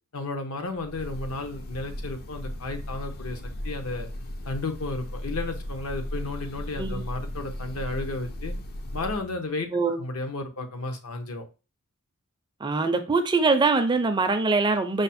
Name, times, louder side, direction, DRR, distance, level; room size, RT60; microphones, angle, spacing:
voice 1, 0.1-4.1 4.5-8.5 8.9-11.4, left 2 dB, 70° left, 0.8 m, -33 dB
Breathing / Bird, 0.8-9.3, left 1 dB, 45° left, 0.4 m, -36 dB
voice 2, 9.7-10.0 12.6-15.0, right 3 dB, 20° right, 0.4 m, -23 dB
5.0 x 2.0 x 4.1 m
head